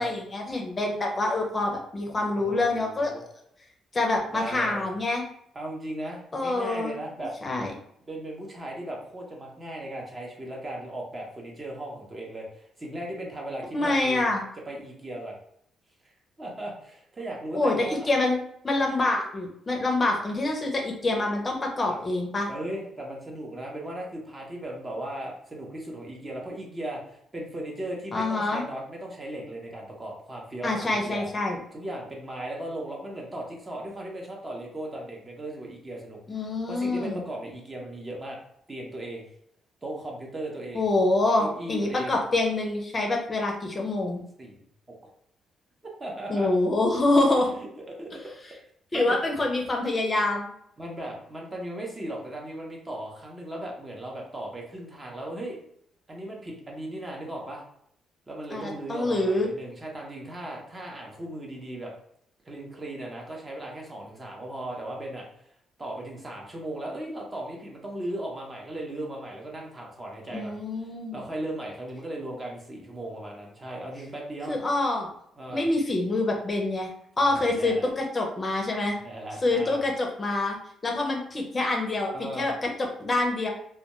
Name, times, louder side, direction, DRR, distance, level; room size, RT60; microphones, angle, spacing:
voice 1, 0.0-3.1 3.9-5.3 6.3-7.0 7.4-7.7 13.7-14.4 17.5-18.4 18.6-22.5 28.1-28.6 30.6-31.6 36.3-37.2 40.7-44.2 46.3-47.5 48.9-50.5 58.5-59.5 70.3-71.2 74.5-75.1 75.5-76.9 77.2-79.0 79.4-80.6 80.8-83.5, left 2 dB, 30° left, 0 dB, 0.5 m, -26 dB
voice 2, 2.4-3.2 4.3-4.9 5.5-7.3 8.1-14.3 14.7-15.4 16.4-18.1 21.9-22.0 22.5-31.2 31.7-38.4 38.7-39.3 39.8-40.9 41.4-42.2 44.4-44.6 45.0-45.1 46.0-46.5 47.6-47.7 48.0-48.1 48.9-49.2 50.8-55.6 56.1-57.6 58.3-61.9 62.4-65.3 65.8-70.6 71.1-74.6 75.4-75.7 77.2-77.9 79.0-79.8 82.1-82.5, right 1 dB, 25° right, -1 dB, 0.7 m, -37 dB
2.2 x 2.2 x 2.9 m, 0.71 s
cardioid pair, 90°, 0 cm